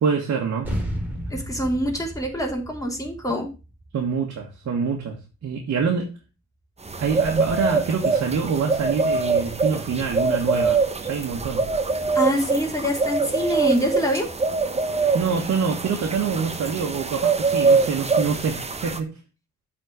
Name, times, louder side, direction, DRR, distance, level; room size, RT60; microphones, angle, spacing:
voice 1, 0.0-0.7 3.9-5.2 5.4-6.1 7.0-11.6 15.1-19.1, right 5 dB, 60° right, 0 dB, 1.7 m, -25 dB
sound 1, 0.6-5.4, equal, 5° right, 3.2 m, -33 dB
voice 2, 1.3-3.5 12.1-14.3, equal, 10° left, 1 dB, 3.0 m, -25 dB
sound 2, 6.9-19.0, right 4 dB, 20° right, 1.0 m, -24 dB
7.7 x 4.4 x 6.1 m, 0.31 s
cardioid pair, 90°, 30 cm